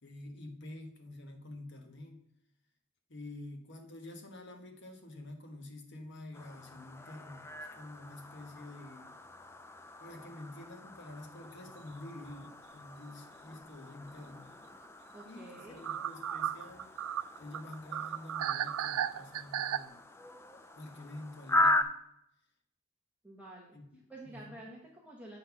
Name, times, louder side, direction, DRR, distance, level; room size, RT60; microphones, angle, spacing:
voice 1, 0.0-2.2 3.1-7.5 7.8-9.1 10.0-14.5 15.2-16.9 17.4-20.0 20.7-21.9 23.7-24.7, left 1 dB, 55° left, 4 dB, 1.1 m, -48 dB
sound 1, 6.3-21.8, left 1 dB, 10° left, 0.3 m, -38 dB
sound 2, 11.7-11.9 12.3-12.4 14.8-14.9 15.2-15.3 15.6-19.8, right 10 dB, 90° right, 0.3 m, -35 dB
voice 2, 15.1-15.8 23.2-23.8 24.1-25.4, right 1 dB, 5° right, -3 dB, 0.9 m, -49 dB
7.4 x 3.9 x 5.8 m, 0.76 s
head